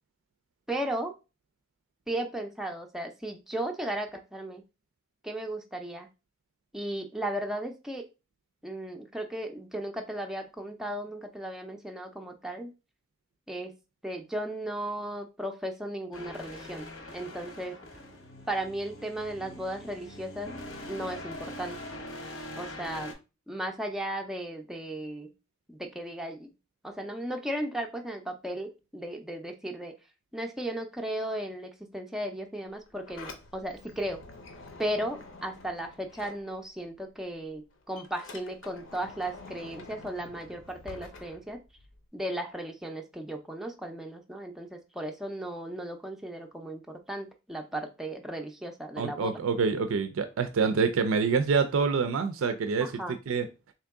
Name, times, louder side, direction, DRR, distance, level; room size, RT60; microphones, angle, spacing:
voice 1, 0.7-1.1 2.1-4.6 5.2-6.1 6.7-8.1 8.6-12.7 13.5-13.7 14.0-17.8 18.5-20.5 20.9-21.8 22.6-23.1 23.5-25.3 25.7-26.5 26.8-29.9 30.3-34.2 34.8-41.6 42.1-49.4 52.8-53.2, right 1 dB, ahead, 0.4 m, -35 dB
sound 1, 16.1-23.1, left 1 dB, 85° left, 1.1 m, -43 dB
Sliding door, 32.7-37.0 37.3-42.1, left 3 dB, 65° left, 0.7 m, -48 dB
voice 2, 49.0-53.5, right 5 dB, 85° right, 0.4 m, -26 dB
3.6 x 2.9 x 3.5 m
head